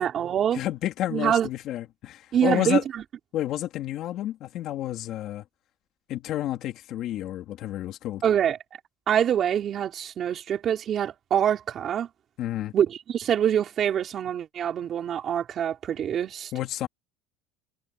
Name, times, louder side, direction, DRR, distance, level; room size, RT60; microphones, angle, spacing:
voice 1, 0.0-0.6 1.1-1.5 2.3-3.0 8.2-8.6 9.1-12.1 12.7-16.5, right 9 dB, 30° right, 5.3 m, -25 dB
voice 2, 0.5-2.8 3.3-5.4 6.1-8.2 12.4-12.7 16.5-16.9, left 13 dB, 45° left, 2.9 m, -30 dB
cardioid pair, 155°, 0 cm